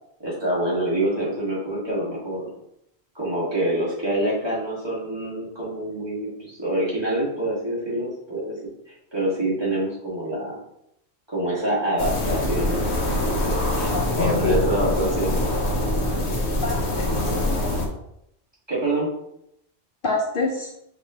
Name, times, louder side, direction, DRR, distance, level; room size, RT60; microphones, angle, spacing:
voice 1, 0.2-2.5 3.2-8.5 8.9-10.6 11.3-12.9 13.7-15.4 18.7-19.1, right 1 dB, 25° right, -7 dB, 1.7 m, -26 dB
sound 1, 12.0-17.9, left 1 dB, 80° left, 1.1 m, -24 dB
voice 2, 13.9-14.6 16.6-17.3 20.0-20.7, left 3 dB, 60° left, 0 dB, 0.8 m, -26 dB
4.9 x 3.6 x 2.9 m, 0.79 s
omnidirectional pair, 1.1 m